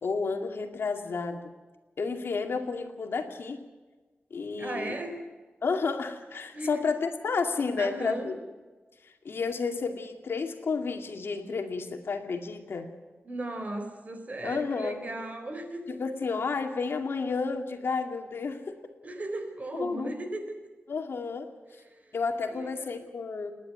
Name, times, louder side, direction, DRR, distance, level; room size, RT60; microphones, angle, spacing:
voice 1, 0.0-1.5 2.0-3.7 4.3-4.9 5.6-8.4 9.0-12.9 14.4-15.0 15.9-18.8 19.7-20.1 20.9-21.5 22.1-23.5, left 4 dB, 70° left, 5 dB, 2.3 m, -31 dB
voice 2, 4.6-5.2 6.5-6.8 7.8-8.3 13.2-15.8 19.0-20.5 21.7-22.2 22.5-23.0, right 2 dB, 40° right, 6 dB, 4.0 m, -37 dB
29.0 x 11.0 x 9.3 m, 1.3 s
wide cardioid pair, 125°, 4 cm